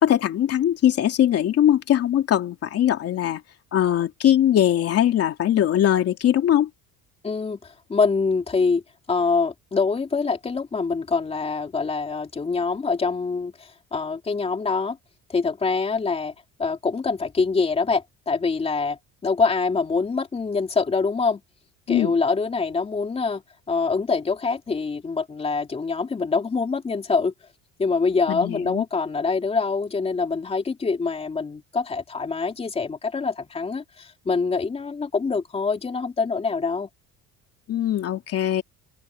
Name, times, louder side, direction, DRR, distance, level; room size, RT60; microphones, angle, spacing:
voice 1, 0.0-3.4 3.7-6.7 21.9-22.1 28.3-28.8 37.7-38.6, left 11 dB, 45° left, 3.0 m, -21 dB
voice 2, 7.2-8.8 9.1-15.0 15.3-16.3 16.6-21.4 21.9-23.4 23.7-27.3 27.8-36.9, left 4 dB, 20° left, 3.1 m, -25 dB
cardioid pair, 160°, 33 cm